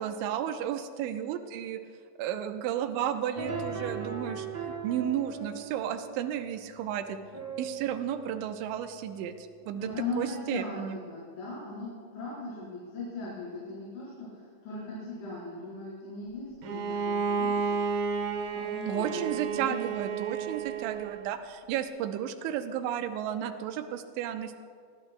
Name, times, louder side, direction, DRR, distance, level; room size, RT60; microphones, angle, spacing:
voice 1, 0.0-1.8 2.2-7.2 7.6-9.9 10.2-11.0 18.9-24.6, right 10 dB, 85° right, 7 dB, 3.1 m, -33 dB
sound 1, 3.3-11.5, right 4 dB, 35° right, 5.1 m, -41 dB
voice 2, 9.7-14.3 14.6-17.7 18.5-20.0, left 2 dB, 80° left, -10 dB, 7.1 m, -38 dB
Bowed string instrument, 16.6-21.3, right 5 dB, 70° right, 2.3 m, -31 dB
24.5 x 20.0 x 2.3 m, 2.2 s
omnidirectional pair, 5.3 m